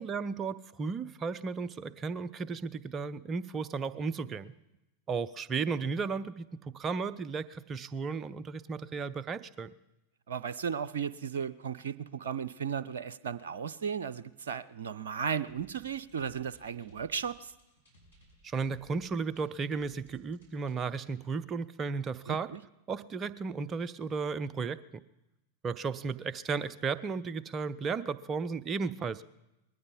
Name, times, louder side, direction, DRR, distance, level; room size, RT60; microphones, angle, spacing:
voice 1, 0.0-4.5 5.1-9.7 18.4-22.5 22.9-24.8 25.6-29.2, right 5 dB, 25° right, 15 dB, 0.6 m, -34 dB
voice 2, 10.3-17.5 22.3-22.6, right 7 dB, 60° right, 17 dB, 0.6 m, -35 dB
sound 1, 15.5-21.1, equal, 90° left, 6.3 m, -62 dB
20.0 x 13.5 x 5.3 m, 0.95 s
figure-of-eight pair, 90°, 0 cm